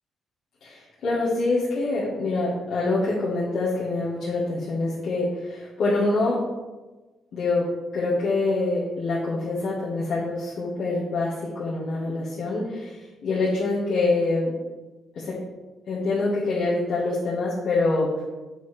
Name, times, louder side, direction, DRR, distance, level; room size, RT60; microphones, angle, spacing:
voice 1, 0.6-6.4 7.3-14.5 15.1-15.4 15.8-18.1, left 2 dB, 70° left, -9 dB, 1.5 m, -25 dB
6.5 x 4.8 x 3.3 m, 1.2 s
cardioid pair, 90°, 0 cm